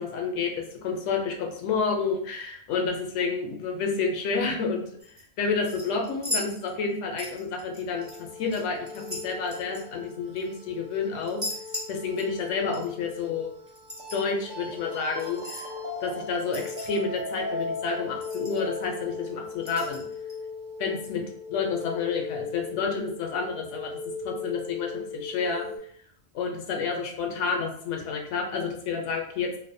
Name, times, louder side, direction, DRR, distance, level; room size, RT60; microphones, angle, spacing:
voice 1, 0.0-11.4 11.9-13.5 14.1-15.7 16.0-20.0 20.8-21.2 21.5-24.0 24.2-25.7 26.3-29.5, left 5 dB, 85° left, 2 dB, 0.9 m, -30 dB
sound 1, 5.0-5.2 5.7-6.9 7.2-8.2 8.5-10.5 11.2-12.5 12.7-12.9 13.7-14.2 15.2-15.7 16.5-17.2 17.6-17.7 17.9-18.0 18.2-18.8 19.6-20.3 21.0-21.1, left 1 dB, 15° right, 0.6 m, -37 dB
sound 2, 8.0-25.8, left 3 dB, 75° right, 1.0 m, -38 dB
2.5 x 2.1 x 2.6 m, 0.64 s
omnidirectional pair, 1.2 m